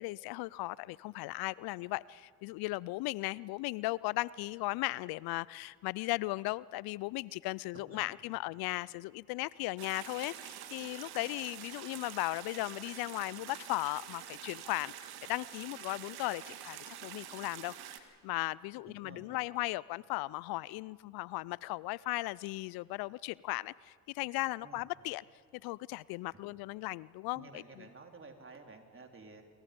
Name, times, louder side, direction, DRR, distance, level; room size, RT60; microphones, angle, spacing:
voice 1, 0.0-25.2 25.6-27.8, left 20 dB, 65° left, 22 dB, 0.5 m, -37 dB
voice 2, 7.7-8.1 18.9-19.4 24.6-24.8 26.3-26.4 27.4-29.4, right 3 dB, 30° right, 3 dB, 3.9 m, -52 dB
sound 1, 9.8-18.0, right 11 dB, 70° right, 1.9 m, -47 dB
27.0 x 23.0 x 5.3 m, 2.1 s
hypercardioid pair, 55°, 39 cm